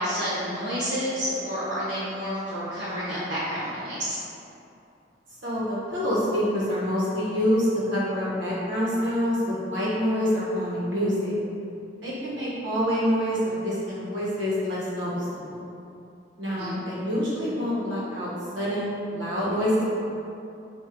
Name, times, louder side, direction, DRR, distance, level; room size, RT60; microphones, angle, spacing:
voice 1, 0.0-4.2 16.5-16.8, equal, 75° right, -12 dB, 1.0 m, -29 dB
voice 2, 5.4-11.4 12.0-15.6 16.4-18.3 18.5-19.8, equal, 90° right, -8 dB, 1.3 m, -26 dB
3.8 x 2.6 x 4.5 m, 2.7 s
head